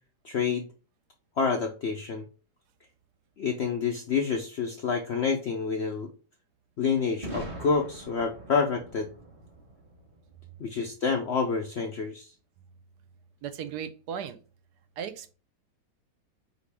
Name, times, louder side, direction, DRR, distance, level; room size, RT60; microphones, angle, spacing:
voice 1, 0.2-0.7 1.4-2.3 3.4-6.1 6.8-9.1 10.6-12.3, left 5 dB, 65° left, 3 dB, 0.6 m, -28 dB
Boom, 7.2-11.1, right 1 dB, 25° right, 0.7 m, -43 dB
voice 2, 13.4-14.4 15.0-15.3, right 8 dB, 75° right, 11 dB, 1.1 m, -36 dB
5.1 x 2.8 x 3.3 m, 0.35 s
omnidirectional pair, 1.8 m